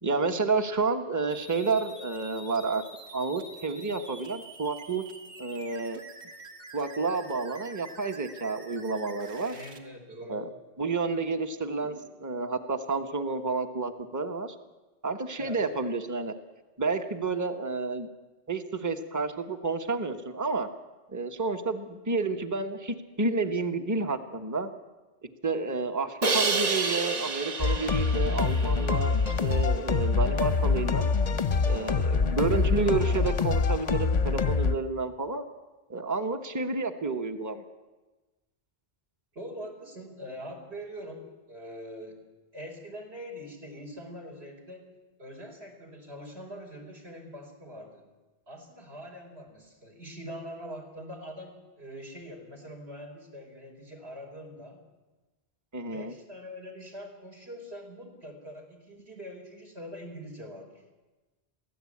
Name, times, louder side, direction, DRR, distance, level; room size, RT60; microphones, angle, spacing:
voice 1, 0.0-2.8 3.1-5.0 5.4-6.0 6.7-9.6 10.3-10.5 10.8-11.9 12.2-14.5 15.0-16.3 16.8-18.1 18.5-20.7 21.1-24.7 25.4-31.1 31.6-35.4 35.9-37.6 55.7-56.1, right 3 dB, 15° right, 7 dB, 1.1 m, -30 dB
sound 1, 1.3-9.8, right 2 dB, 85° right, 2.1 m, -47 dB
voice 2, 9.5-10.5 11.8-11.9 15.4-15.6 39.3-42.2 42.5-44.9 45.2-48.0 48.5-54.8 55.8-60.7, equal, 65° right, 2 dB, 4.8 m, -43 dB
Crash cymbal, 26.2-29.3, right 4 dB, 40° right, 1.0 m, -30 dB
sound 2, 27.6-34.7, left 5 dB, 40° left, 0.8 m, -25 dB
23.0 x 15.5 x 8.6 m, 1.2 s
omnidirectional pair, 1.1 m